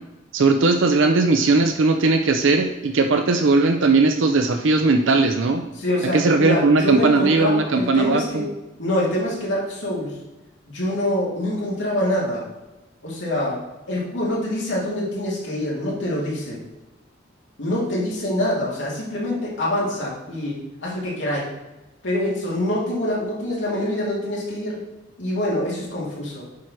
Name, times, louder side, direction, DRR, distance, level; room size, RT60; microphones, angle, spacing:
voice 1, 0.3-5.6 6.1-8.5, right 3 dB, 75° right, 5 dB, 0.6 m, -18 dB
voice 2, 5.8-8.5 8.8-10.1 10.7-12.4 13.0-13.6 13.9-16.6 17.6-21.5 22.0-24.8 25.2-26.4, left 1 dB, 65° left, -6 dB, 2.9 m, -25 dB
7.3 x 4.6 x 6.1 m, 1.0 s
head